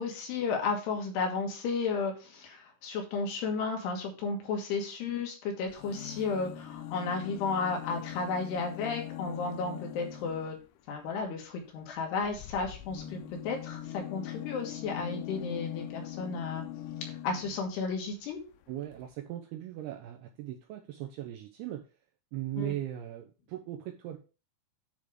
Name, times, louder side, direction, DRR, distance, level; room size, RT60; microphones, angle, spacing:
voice 1, 0.0-10.5 10.9-13.2 13.4-16.6 17.2-18.4 22.6-22.7, left 4 dB, 70° left, 2 dB, 3.3 m, -33 dB
sound 1, 5.7-10.6 12.2-17.7 18.6-18.7 18.9-19.0, left 11 dB, 90° left, 2.3 m, -42 dB
voice 2, 18.7-21.8 22.3-24.2, right 13 dB, 90° right, 4 dB, 2.3 m, -38 dB
10.0 x 3.6 x 4.9 m, 0.32 s
omnidirectional pair, 5.5 m